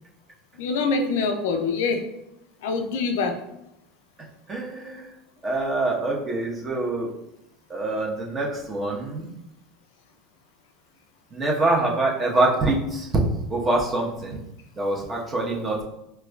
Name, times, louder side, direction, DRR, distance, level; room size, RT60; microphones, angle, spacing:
voice 1, 0.6-2.0 2.6-3.4, left 4 dB, 75° left, 5 dB, 0.4 m, -24 dB
voice 2, 4.5-5.1 5.4-7.1 7.7-9.3 11.3-13.1 13.5-14.4 14.7-15.8, right 2 dB, 25° right, -2 dB, 0.9 m, -25 dB
4.6 x 2.3 x 2.3 m, 0.86 s
hypercardioid pair, 90°, 0 cm